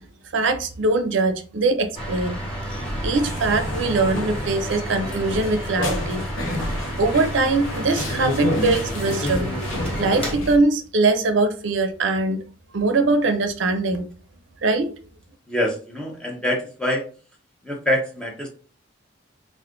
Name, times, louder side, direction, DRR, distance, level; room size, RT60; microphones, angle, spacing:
voice 1, 0.3-2.4 2.9-6.2 7.0-9.6 10.0-12.4 12.7-14.1 14.6-14.9, right 3 dB, 70° right, 0.5 m, -22 dB
sound 1, 1.9-10.3, right 1 dB, 25° left, 1.0 m, -31 dB
sound 2, 2.7-10.6, left 1 dB, 85° left, 0.8 m, -30 dB
voice 2, 15.5-17.0 17.6-18.5, left 1 dB, 5° left, 0.6 m, -25 dB
2.5 x 2.4 x 3.6 m
head